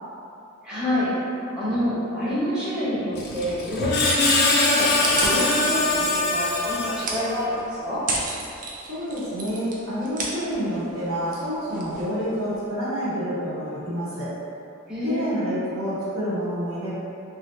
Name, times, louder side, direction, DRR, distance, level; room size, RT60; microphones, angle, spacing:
voice 1, 0.6-8.0 14.9-15.4, equal, 5° right, -13 dB, 0.8 m, -27 dB
Screech, 3.1-7.4, left 2 dB, 45° left, 0.4 m, -23 dB
sound 1, 5.0-12.7, right 2 dB, 40° right, 0.4 m, -34 dB
voice 2, 8.9-14.3 15.0-16.9, equal, 65° right, -11 dB, 1.1 m, -28 dB
3.2 x 2.5 x 2.6 m, 2.6 s
head